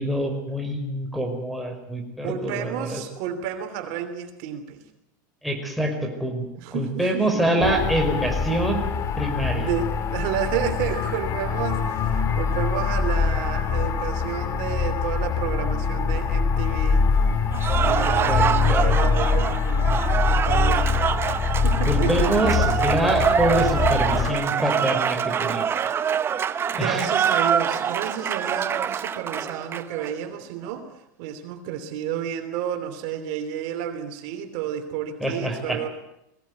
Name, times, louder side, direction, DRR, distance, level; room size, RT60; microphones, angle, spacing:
voice 1, 0.0-3.0 5.4-8.8 9.2-9.7 18.3-19.0 21.9-25.7 26.8-27.1 35.2-35.9, right 1 dB, ahead, 1 dB, 5.1 m, -25 dB
voice 2, 2.2-4.8 6.5-7.9 9.5-17.2 17.8-19.9 20.2-21.0 21.6-22.5 26.7-30.9 31.2-35.9, right 9 dB, 55° right, 7 dB, 3.0 m, -31 dB
Synthetic Space Drone, 7.6-24.3, left 5 dB, 30° left, 2.4 m, -24 dB
Cheering / Applause, 17.5-30.1, right 7 dB, 25° right, 1.0 m, -25 dB
21.5 x 17.0 x 9.6 m, 0.84 s
supercardioid pair, 130°, 10 cm